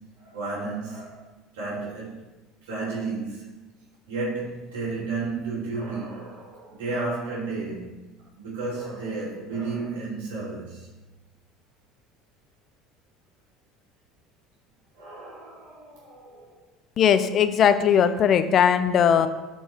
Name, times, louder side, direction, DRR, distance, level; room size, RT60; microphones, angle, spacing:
voice 1, 0.2-1.2 1.5-2.2 2.7-3.6 4.1-7.9 8.4-10.9 14.9-16.6 19.0-19.3, right 3 dB, 90° right, -6 dB, 2.5 m, -32 dB
voice 2, 17.0-19.3, left 8 dB, 45° left, 11 dB, 0.5 m, -19 dB
12.0 x 4.6 x 2.9 m, 1.1 s
supercardioid pair, 90°, 0 cm